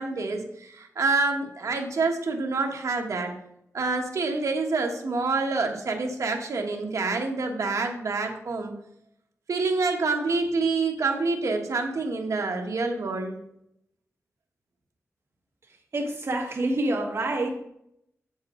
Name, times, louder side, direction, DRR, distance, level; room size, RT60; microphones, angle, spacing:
voice 1, 0.0-3.3 3.7-8.7 9.5-13.4, right 3 dB, 75° right, 3 dB, 1.3 m, -27 dB
voice 2, 15.7-17.6, right 1 dB, 55° right, 1 dB, 1.6 m, -27 dB
7.8 x 7.0 x 3.8 m, 0.76 s
wide cardioid pair, 135°, 5 cm